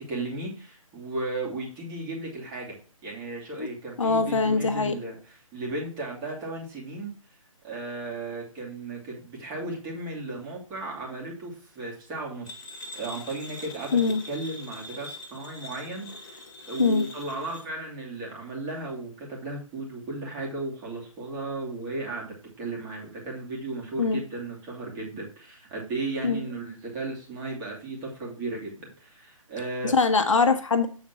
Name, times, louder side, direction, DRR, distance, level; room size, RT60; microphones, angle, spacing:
voice 1, 0.1-2.8 3.0-7.1 7.6-12.7 12.9-29.9, right 2 dB, 20° right, -2 dB, 2.6 m, -35 dB
voice 2, 4.0-4.9 13.9-14.2 16.8-17.0 24.0-24.2 26.2-26.4 29.8-30.9, left 4 dB, 65° left, 7 dB, 1.2 m, -22 dB
sound 1, 12.5-17.6, left 2 dB, 35° left, 1.7 m, -43 dB
7.8 x 4.2 x 5.8 m, 0.39 s
figure-of-eight pair, 150°, 18 cm